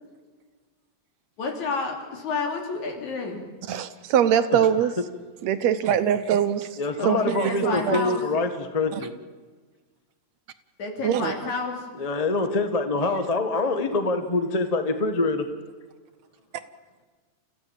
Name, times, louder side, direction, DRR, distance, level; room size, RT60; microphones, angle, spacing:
voice 1, 1.4-3.5 7.0-8.2 10.8-11.9, left 4 dB, 75° left, 2 dB, 4.4 m, -30 dB
voice 2, 3.7-4.9 5.4-6.8 7.1-8.1 8.9-9.0 11.0-11.3, right 9 dB, 70° right, 11 dB, 2.0 m, -23 dB
voice 3, 6.8-9.1 12.0-15.4, left 3 dB, 30° left, 7 dB, 0.6 m, -25 dB
29.5 x 15.0 x 7.4 m, 1.4 s
omnidirectional pair, 3.4 m